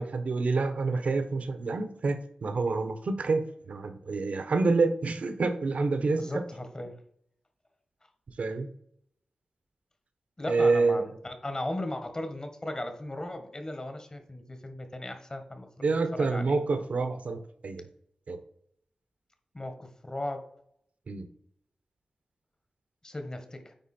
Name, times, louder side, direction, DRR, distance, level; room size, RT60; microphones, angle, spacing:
voice 1, 0.0-6.2 8.4-8.7 10.5-11.0 15.8-17.8 18.3-18.4 21.1-21.3, right 3 dB, 70° right, 8 dB, 1.1 m, -27 dB
voice 2, 6.1-7.0 10.4-16.5 19.5-20.5 23.0-23.7, left 1 dB, 30° left, 6 dB, 1.6 m, -37 dB
9.2 x 4.2 x 4.5 m, 0.68 s
cardioid pair, 55°, 2 cm